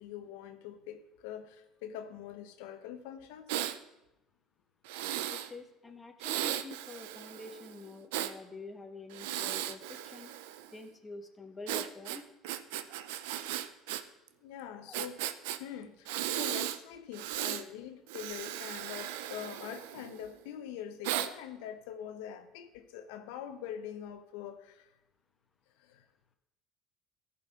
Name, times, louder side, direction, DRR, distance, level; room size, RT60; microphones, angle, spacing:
voice 1, 0.0-3.5 14.4-15.2 15.6-24.9 25.8-26.1, left 9 dB, 85° left, 8 dB, 0.9 m, -44 dB
Breathing, 3.5-3.8 4.8-5.5 6.2-8.3 9.1-10.7 11.7-14.0 14.3-14.4 14.9-15.6 16.0-16.8 17.1-17.6 18.1-20.2 21.0-21.3, right 13 dB, 90° right, 0.6 m, -36 dB
voice 2, 5.3-10.3 10.7-12.2 14.9-15.1, left 2 dB, 15° left, 5 dB, 1.2 m, -47 dB
14.5 x 5.5 x 5.6 m, 0.93 s
supercardioid pair, 115°, 0 cm